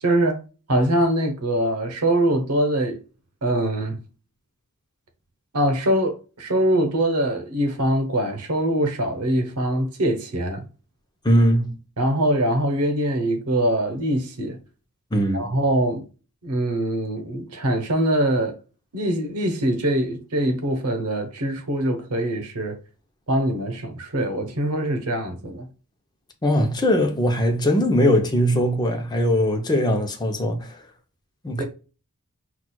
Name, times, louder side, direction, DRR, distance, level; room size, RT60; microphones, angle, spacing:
voice 1, 0.0-0.4 0.7-3.0 3.4-4.0 5.5-10.6 12.0-14.6 15.3-16.1 16.4-18.6 18.9-22.8 23.3-25.7 31.6-31.7, right 1 dB, 90° right, 0.9 m, -23 dB
voice 2, 11.2-11.8 15.1-15.5 26.4-30.8 31.4-31.6, equal, 20° left, 0.6 m, -20 dB
6.0 x 2.4 x 2.2 m
head